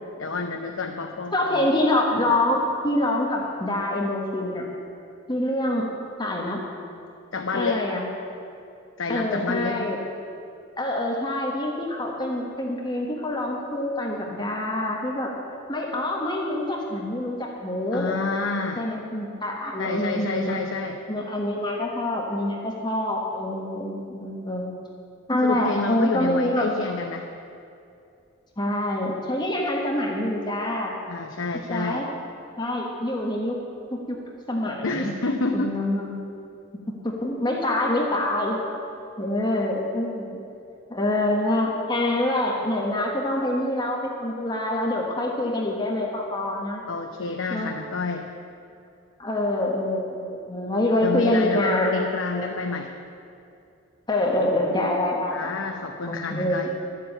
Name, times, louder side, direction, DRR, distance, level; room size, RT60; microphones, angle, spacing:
voice 1, 0.2-1.6 7.3-7.8 9.0-9.9 17.9-18.8 19.8-21.0 25.4-27.3 31.1-32.0 34.8-35.7 46.9-48.3 51.0-52.9 55.3-56.7, left 3 dB, 70° left, 3 dB, 0.7 m, -29 dB
voice 2, 1.3-4.6 5.3-5.9 6.2-6.6 7.5-8.0 9.1-10.0 10.8-15.3 15.7-18.2 18.8-20.6 21.1-24.7 25.3-26.7 28.6-30.9 31.7-32.1 32.6-33.6 33.9-34.2 34.5-35.1 35.5-36.2 37.0-38.6 39.2-40.4 40.9-46.8 47.5-47.7 49.2-51.9 52.3-52.5 54.1-55.6 56.1-56.7, left 1 dB, 20° left, -1 dB, 1.3 m, -26 dB
11.5 x 7.7 x 8.6 m, 2.6 s
head